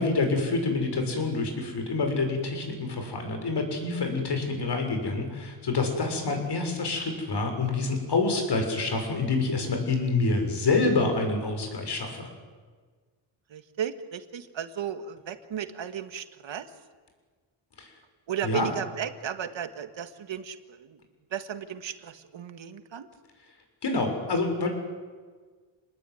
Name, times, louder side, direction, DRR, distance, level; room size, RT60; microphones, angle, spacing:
voice 1, 0.0-12.3 17.8-17.9 18.4-18.7 23.8-24.7, left 3 dB, 55° left, 4 dB, 6.8 m, -27 dB
voice 2, 13.5-16.7 18.3-21.0 21.3-23.1, right 8 dB, 70° right, 8 dB, 2.2 m, -35 dB
28.0 x 20.5 x 9.5 m, 1.5 s
cardioid pair, 100°, 47 cm